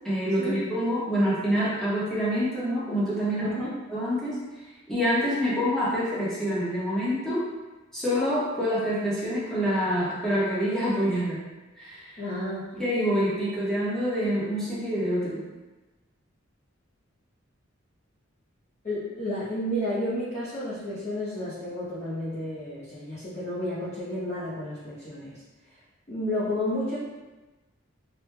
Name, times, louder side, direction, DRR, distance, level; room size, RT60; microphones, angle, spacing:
voice 1, 0.0-3.5 3.9-4.4 4.9-7.4 7.9-11.4 11.8-12.2 12.7-15.4, equal, 5° left, -9 dB, 0.9 m, -26 dB
voice 2, 3.4-3.7 12.2-12.6 18.8-25.4 26.1-27.0, left 1 dB, 35° left, -12 dB, 0.7 m, -31 dB
3.3 x 2.2 x 3.1 m, 1.2 s
head